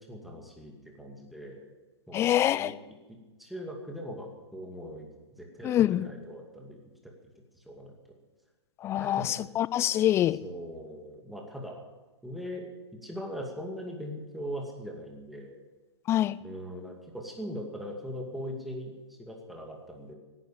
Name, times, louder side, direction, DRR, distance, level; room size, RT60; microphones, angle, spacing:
voice 1, 0.1-1.7 2.1-2.8 3.4-5.1 5.4-7.1 7.5-8.0 9.0-9.3 10.4-11.8 12.2-15.6 16.4-20.1, equal, ahead, 0 dB, 2.4 m, -40 dB
voice 2, 2.1-2.7 5.6-6.0 8.8-10.4 16.1-16.4, left 12 dB, 20° left, 19 dB, 0.4 m, -25 dB
17.0 x 9.6 x 7.2 m, 1.1 s
figure-of-eight pair, 115°, 14 cm